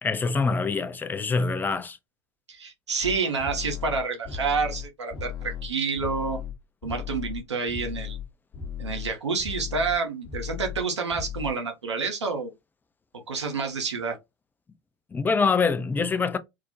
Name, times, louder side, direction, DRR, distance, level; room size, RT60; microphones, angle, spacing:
voice 1, 0.0-2.0 15.1-16.4, left 4 dB, 15° left, 0.3 m, -25 dB
voice 2, 2.5-6.4 6.8-8.2 8.8-12.5 13.3-14.2, right 4 dB, 85° right, 0.6 m, -28 dB
sound 1, 3.0-8.3 8.5-9.1 9.4-10.0 10.2-10.8 11.1-11.5, left 8 dB, 35° left, 0.8 m, -36 dB
2.4 x 2.0 x 2.5 m
figure-of-eight pair, 80°, 14 cm